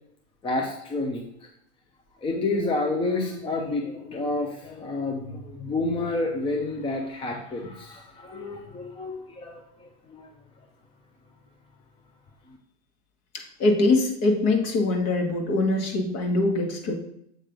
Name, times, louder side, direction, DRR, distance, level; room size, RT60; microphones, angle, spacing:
voice 1, 0.4-1.5 2.2-10.3, left 2 dB, 15° left, 1 dB, 0.7 m, -29 dB
voice 2, 13.6-16.9, left 2 dB, 45° left, 3 dB, 1.5 m, -23 dB
7.6 x 3.2 x 5.1 m, 0.73 s
hypercardioid pair, 115°, 36 cm